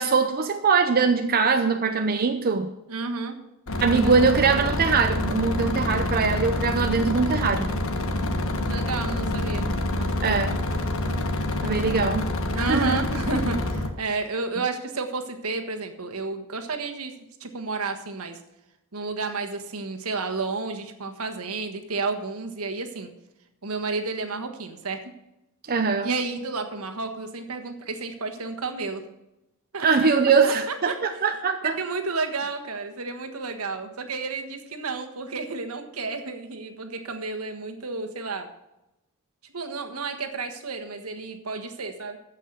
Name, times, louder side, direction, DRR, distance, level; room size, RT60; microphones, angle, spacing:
voice 1, 0.0-2.7 3.8-7.7 10.2-10.6 11.6-12.3 12.7-13.0 25.7-26.2 29.8-31.8, right 5 dB, 45° right, 6 dB, 0.7 m, -22 dB
voice 2, 2.9-3.3 3.8-4.1 8.6-9.7 9.9-10.5 12.5-17.1 17.4-18.4 18.9-23.1 23.6-25.0 26.0-29.0 29.7-30.1 30.4-31.0 31.6-38.5 39.5-42.2, right 3 dB, 75° right, 5 dB, 1.4 m, -31 dB
sound 1, 3.7-13.9, left 1 dB, 65° left, 1.3 m, -27 dB
14.5 x 5.7 x 6.7 m, 0.93 s
head